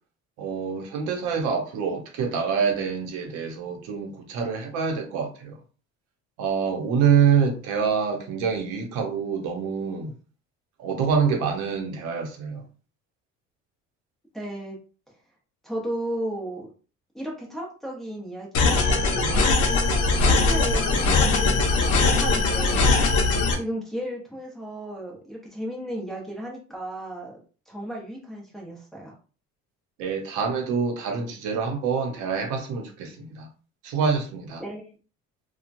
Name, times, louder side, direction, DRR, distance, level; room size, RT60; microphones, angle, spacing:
voice 1, 0.4-5.6 6.4-10.1 10.8-12.6 30.0-33.5 33.8-34.6, right 6 dB, 85° right, 0.8 m, -26 dB
voice 2, 14.3-14.8 15.6-16.7 17.1-19.5 20.2-23.1 23.5-27.4 27.7-29.2 34.6-35.0, right 1 dB, ahead, 0.8 m, -34 dB
sound 1, 18.5-23.5, left 3 dB, 55° left, 0.8 m, -20 dB
2.9 x 2.3 x 2.6 m
cardioid pair, 140°, 29 cm